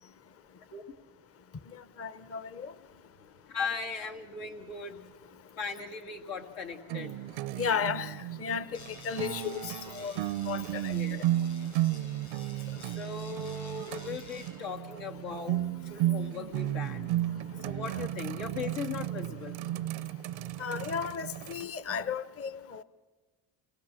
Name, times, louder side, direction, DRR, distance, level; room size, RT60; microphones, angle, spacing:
voice 1, 2.0-2.7 7.6-8.8 9.0-10.2 10.5-11.0 17.9-18.0 20.6-22.8, left 6 dB, 30° left, 0.7 m, -34 dB
voice 2, 3.5-5.0 5.6-7.1 10.9-11.2 12.9-17.1 17.6-19.6, left 5 dB, 85° left, 2.2 m, -38 dB
sound 1, 6.9-21.6, right 14 dB, 85° right, 0.6 m, -34 dB
sound 2, 8.7-14.5, left 4 dB, 60° left, 6.9 m, -51 dB
27.0 x 19.0 x 7.5 m
cardioid pair, 100°, 44 cm